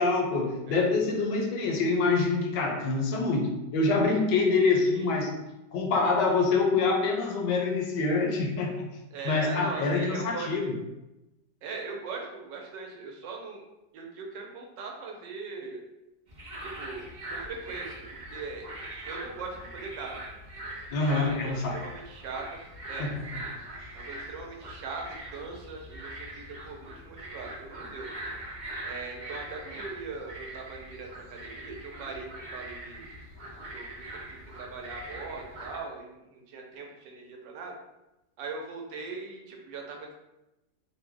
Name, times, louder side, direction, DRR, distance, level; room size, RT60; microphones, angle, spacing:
voice 1, 0.0-5.3 5.7-8.9 9.2-10.7 20.9-21.8 23.0-23.1 23.8-23.9, left 3 dB, 75° left, 2 dB, 1.2 m, -26 dB
voice 2, 4.8-5.2 9.1-10.6 11.6-13.6 13.9-15.8 16.6-18.7 19.0-20.2 21.0-22.6 22.9-23.1 23.9-28.1 28.8-33.1 33.7-33.9 34.3-37.7 38.4-40.1, right 4 dB, 80° right, 1 dB, 1.3 m, -40 dB
sound 1, 16.3-35.8, right 1 dB, 65° right, 0.4 m, -42 dB
3.1 x 2.1 x 3.5 m, 0.95 s
omnidirectional pair, 1.9 m